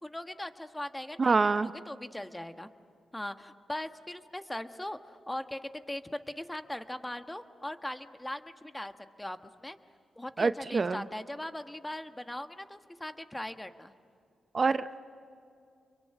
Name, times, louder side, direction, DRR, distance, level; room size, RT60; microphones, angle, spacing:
voice 1, 0.0-1.4 1.6-2.7 3.1-8.9 9.2-9.8 10.2-13.9, left 1 dB, 10° left, 8 dB, 1.4 m, -40 dB
voice 2, 1.2-1.7 10.4-11.0 14.5-15.0, right 4 dB, 45° right, 12 dB, 0.7 m, -26 dB
28.5 x 23.0 x 9.0 m, 2.4 s
cardioid pair, 55°, 0 cm